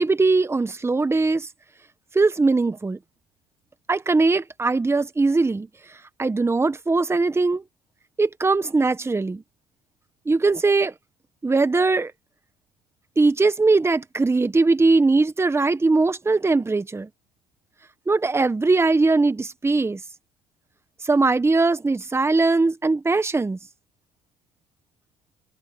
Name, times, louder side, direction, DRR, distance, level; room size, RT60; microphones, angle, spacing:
voice 1, 0.0-1.5 2.1-3.0 3.9-5.7 6.2-7.6 8.2-9.4 10.2-10.9 11.4-12.1 13.2-17.1 18.1-20.0 21.0-23.6, right 3 dB, 15° right, 1.3 m, -20 dB
supercardioid pair, 90°, 17 cm